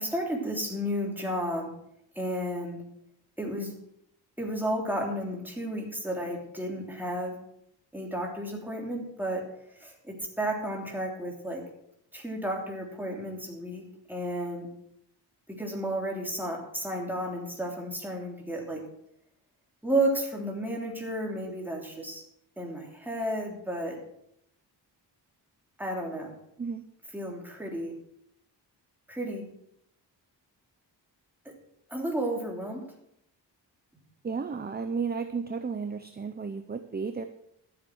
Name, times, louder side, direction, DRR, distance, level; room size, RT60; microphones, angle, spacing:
voice 1, 0.0-1.7 2.1-2.8 3.4-3.7 4.4-7.3 7.9-9.4 9.8-11.6 12.1-14.7 15.5-18.8 19.8-22.2 22.6-24.0 25.8-26.3 27.1-27.9 29.1-29.5 31.9-32.8, right 1 dB, 5° right, -1 dB, 3.2 m, -32 dB
voice 2, 34.2-37.2, right 5 dB, 25° right, 9 dB, 0.7 m, -33 dB
13.0 x 7.5 x 6.3 m, 0.76 s
wide cardioid pair, 110°, 43 cm